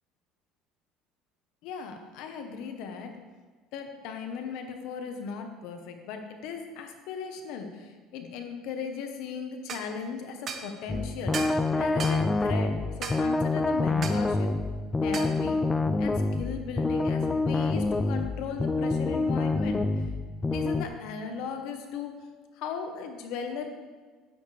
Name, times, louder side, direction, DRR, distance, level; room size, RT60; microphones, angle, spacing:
voice 1, 1.6-3.1 3.7-14.5 15.0-15.6 16.0-20.1 20.5-22.3 22.6-23.7, left 6 dB, 70° left, 5 dB, 1.1 m, -37 dB
sound 1, 9.7-9.9 10.5-10.7 11.3-11.6 12.0-12.2 13.0-13.2 14.0-14.2 15.1-15.3, right 6 dB, 35° right, 0.9 m, -35 dB
sound 2, 10.9-20.9, left 3 dB, 15° left, 0.4 m, -27 dB
10.0 x 9.3 x 3.4 m, 1.5 s
cardioid pair, 140°, 0 cm